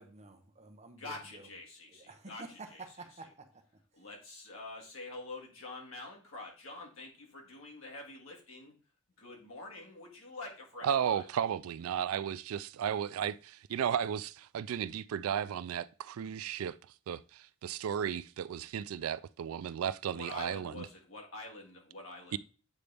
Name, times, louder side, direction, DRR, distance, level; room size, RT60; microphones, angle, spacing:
voice 1, 0.0-1.5 1.9-3.5, right 3 dB, 30° right, 0.9 m, -50 dB
voice 2, 1.0-3.0 3.9-8.7 9.2-11.3 20.1-22.4, left 2 dB, 75° left, 1.9 m, -46 dB
voice 3, 10.8-16.8 17.1-20.9 22.3-22.4, right 8 dB, 90° right, 0.3 m, -34 dB
8.3 x 4.0 x 3.4 m
head